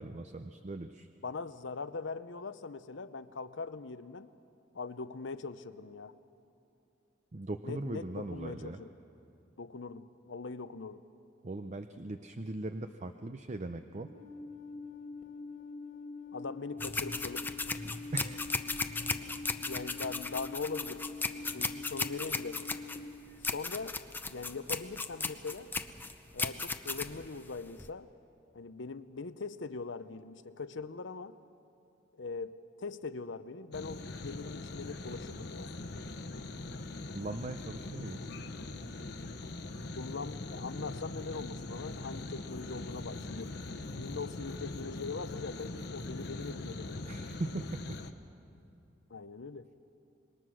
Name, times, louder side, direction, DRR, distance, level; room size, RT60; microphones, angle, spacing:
voice 1, 0.0-1.1 7.3-8.8 11.4-14.1 18.1-18.4 37.1-38.2 47.1-48.0, right 2 dB, 40° right, 8 dB, 0.6 m, -39 dB
voice 2, 1.2-4.3 4.7-6.1 7.6-8.9 9.6-11.0 16.3-17.5 19.7-21.0 21.5-22.6 23.5-24.0 24.3-25.7 26.3-28.1 28.5-31.3 32.2-35.7 40.0-43.5 43.9-47.0 49.1-49.7, left 4 dB, 85° left, 13 dB, 0.8 m, -41 dB
Alarm, 14.0-23.0, left 4 dB, 45° left, 1.6 m, -45 dB
sound 1, 16.8-27.9, left 3 dB, 10° left, 0.7 m, -36 dB
sound 2, 33.7-48.1, left 2 dB, 65° left, 1.0 m, -42 dB
26.5 x 21.5 x 6.3 m, 2.7 s
head